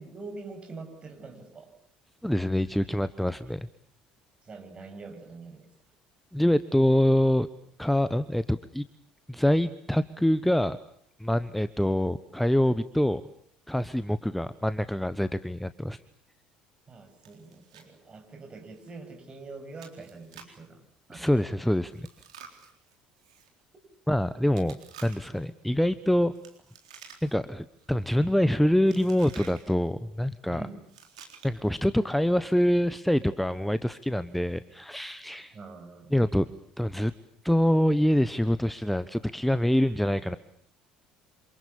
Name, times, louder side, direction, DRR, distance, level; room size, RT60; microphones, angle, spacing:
voice 1, 0.0-1.7 4.4-5.7 16.9-20.8 21.1-21.5 23.7-23.8 30.5-30.8 35.5-36.2, right 3 dB, 30° right, 5 dB, 7.6 m, -44 dB
voice 2, 2.2-3.7 6.3-7.5 7.8-8.8 9.3-10.8 11.2-13.2 13.7-16.0 21.1-22.1 24.1-26.3 27.2-30.6 31.4-35.5 36.1-36.5 36.8-37.1 37.4-40.4, equal, 5° left, 14 dB, 1.1 m, -25 dB
Chewing mastication, 17.2-17.9 18.2-18.3 18.8-18.9 19.8-20.6 21.9-23.5 24.5-25.5 26.3-27.5 27.8-28.2 28.9-29.7 30.8-31.7, right 7 dB, 75° right, 4.0 m, -51 dB
28.0 x 27.5 x 7.1 m, 0.63 s
figure-of-eight pair, 55°, 3 cm